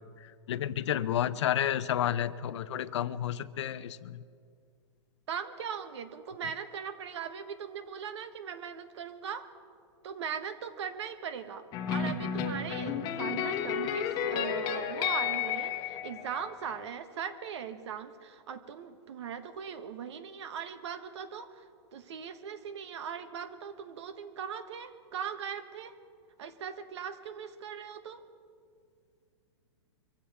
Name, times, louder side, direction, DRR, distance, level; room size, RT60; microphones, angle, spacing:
voice 1, 0.5-4.2, left 11 dB, 70° left, 15 dB, 0.7 m, -31 dB
voice 2, 5.3-9.5 10.0-25.9 26.4-28.2, right 7 dB, 70° right, 10 dB, 1.3 m, -40 dB
sound 1, 11.7-16.8, left 8 dB, 30° left, 1.1 m, -32 dB
24.0 x 15.5 x 3.5 m, 2.3 s
hypercardioid pair, 155°, 15 cm